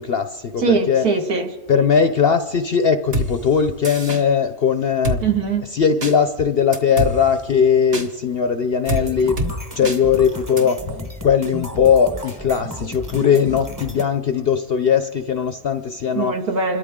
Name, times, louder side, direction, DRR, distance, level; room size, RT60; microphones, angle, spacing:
voice 1, 0.0-1.1 1.7-5.2 5.7-9.4 9.8-10.8 11.2-16.3, left 7 dB, 55° left, 9 dB, 0.7 m, -19 dB
voice 2, 0.6-1.5 5.2-5.6 16.1-16.8, right 4 dB, 80° right, 3 dB, 2.3 m, -21 dB
Drum kit, 3.1-3.3 3.8-4.2 5.0-5.2 6.0-6.1 6.7-7.1 7.9-8.1 8.9-9.0 9.4-9.5 9.8-10.0 10.6-10.7, right 1 dB, 50° right, 1.9 m, -23 dB
sound 1, 8.8-14.0, equal, 15° right, 1.0 m, -33 dB
29.0 x 13.5 x 3.7 m, 1.2 s
omnidirectional pair, 1.6 m